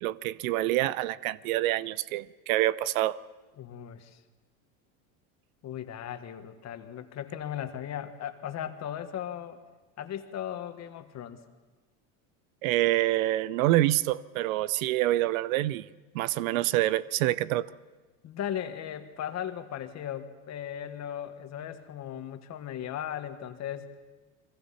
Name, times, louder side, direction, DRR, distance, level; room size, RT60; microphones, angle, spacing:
voice 1, 0.0-3.2 12.6-15.9 16.1-17.7, right 15 dB, 80° right, 0.7 m, -26 dB
voice 2, 3.6-4.2 5.6-9.6 10.0-11.4 18.2-23.9, left 10 dB, 40° left, 1.6 m, -37 dB
30.0 x 22.0 x 4.3 m
supercardioid pair, 110°, 40 cm